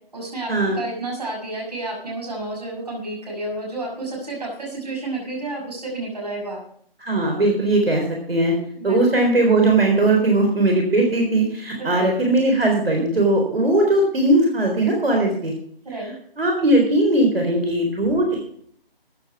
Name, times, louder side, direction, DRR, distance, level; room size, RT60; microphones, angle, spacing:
voice 1, 0.1-6.6 8.8-9.0 11.8-12.1 15.8-16.1, right 2 dB, 45° right, -1 dB, 6.4 m, -30 dB
voice 2, 7.0-8.0 8.3-8.5 8.8-15.5 16.4-18.4, right 2 dB, 75° right, 2 dB, 3.9 m, -19 dB
14.0 x 9.0 x 4.8 m, 0.62 s
figure-of-eight pair, 175°, 30 cm